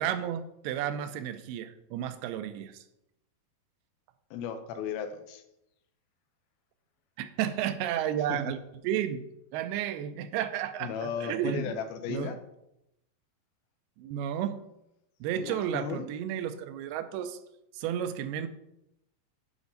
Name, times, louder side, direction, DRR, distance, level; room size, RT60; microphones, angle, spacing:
voice 1, 0.0-2.8 7.2-8.6 8.8-9.3 9.5-11.7 12.1-12.4 14.0-14.6 15.2-17.4 17.7-18.5, right 10 dB, 90° right, 10 dB, 2.6 m, -32 dB
voice 2, 4.3-5.4 8.3-8.4 10.8-12.4 15.4-16.1, left 7 dB, 85° left, 8 dB, 2.5 m, -35 dB
10.5 x 5.2 x 3.9 m, 0.84 s
omnidirectional pair, 4.5 m